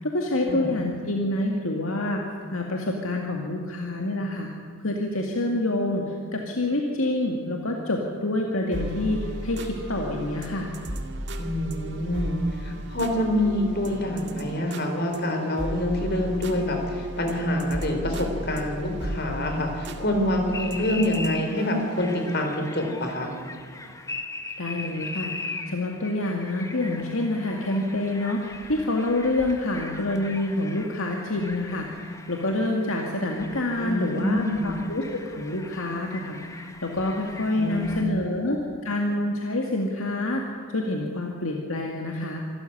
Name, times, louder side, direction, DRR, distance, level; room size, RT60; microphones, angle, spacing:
voice 1, 0.0-2.2 2.5-4.5 4.8-10.7 24.6-42.4, left 2 dB, 70° left, 1 dB, 2.1 m, -27 dB
sound 1, 8.7-22.5, right 1 dB, 55° right, 2.0 m, -36 dB
voice 2, 11.4-23.3 33.8-34.8 37.6-38.6, left 1 dB, 50° left, 4 dB, 4.1 m, -26 dB
sound 2, 20.5-38.0, left 2 dB, 15° left, 1.5 m, -40 dB
26.0 x 13.5 x 9.9 m, 2.2 s
head